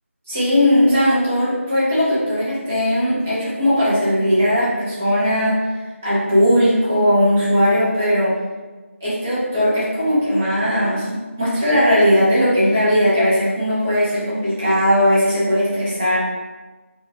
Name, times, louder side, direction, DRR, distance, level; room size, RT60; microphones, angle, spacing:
voice 1, 0.3-8.4 9.0-16.2, equal, 10° right, -11 dB, 0.4 m, -18 dB
4.3 x 2.2 x 2.8 m, 1.2 s
figure-of-eight pair, 170°, 7 cm